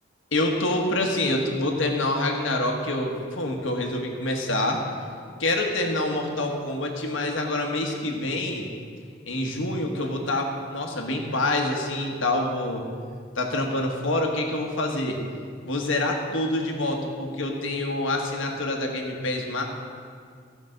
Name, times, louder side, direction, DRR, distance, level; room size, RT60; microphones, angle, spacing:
voice 1, 0.3-4.8 5.4-8.6 9.3-12.8 13.3-15.2 15.6-19.6, left 1 dB, 85° left, 2 dB, 1.4 m, -26 dB
14.0 x 5.2 x 6.5 m, 2.1 s
head